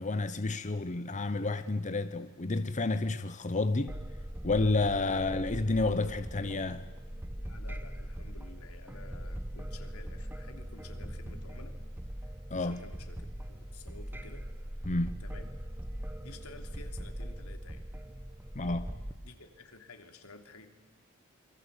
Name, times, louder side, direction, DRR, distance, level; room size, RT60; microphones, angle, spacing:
voice 1, 0.0-3.9 4.4-6.9 12.5-12.8 14.8-15.2 18.5-18.9, left 3 dB, 35° left, 0.9 m, -30 dB
sound 1, 3.9-19.1, equal, 10° right, 1.0 m, -41 dB
voice 2, 5.0-6.0 7.4-11.8 12.2-14.5 15.2-15.5 16.2-17.8 19.2-20.7, left 3 dB, 85° left, 3.2 m, -52 dB
27.5 x 23.5 x 8.3 m
head